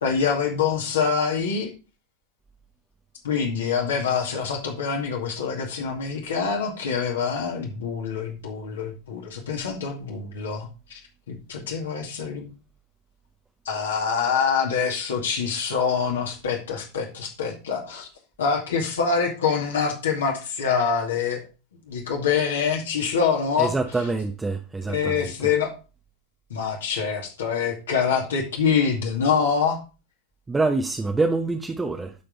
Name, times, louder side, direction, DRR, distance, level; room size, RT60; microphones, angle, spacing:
voice 1, 0.0-1.7 3.2-11.0 11.3-12.5 13.7-18.1 18.4-21.4 21.9-23.7 24.9-25.7 26.5-29.8, left 6 dB, 65° left, 2.2 m, -25 dB
voice 2, 23.6-25.3 30.5-32.1, right 3 dB, 10° right, 0.9 m, -25 dB
12.0 x 5.2 x 4.0 m
figure-of-eight pair, 90°, 0 cm